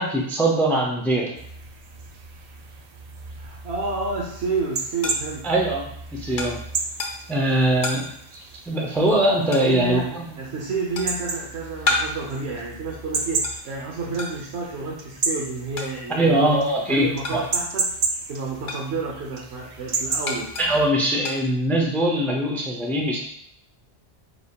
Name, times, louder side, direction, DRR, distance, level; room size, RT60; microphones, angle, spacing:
voice 1, 0.0-1.3 5.4-6.6 7.3-8.1 8.7-10.2 16.1-17.4 20.6-23.2, right 1 dB, 5° left, -1 dB, 0.4 m, -22 dB
sound 1, 1.4-20.9, right 4 dB, 55° right, 0.4 m, -33 dB
voice 2, 3.4-5.5 9.6-10.1 10.4-16.5 16.9-17.9 18.3-20.5, right 3 dB, 85° right, -3 dB, 1.0 m, -30 dB
sound 2, 5.0-17.8 18.1-22.1, left 2 dB, 55° left, 0.9 m, -33 dB
5.0 x 3.6 x 2.3 m, 0.68 s
omnidirectional pair, 1.1 m